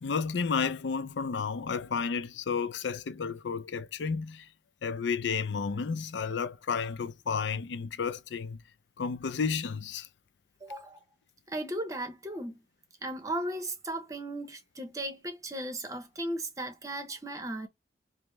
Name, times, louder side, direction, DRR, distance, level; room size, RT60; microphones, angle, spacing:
voice 1, 0.0-4.5 4.8-8.6 9.0-10.1, left 5 dB, 80° left, 0.4 m, -32 dB
voice 2, 10.6-11.0 11.5-12.6 13.0-17.7, right 1 dB, 20° right, 0.7 m, -36 dB
5.3 x 2.0 x 3.1 m
head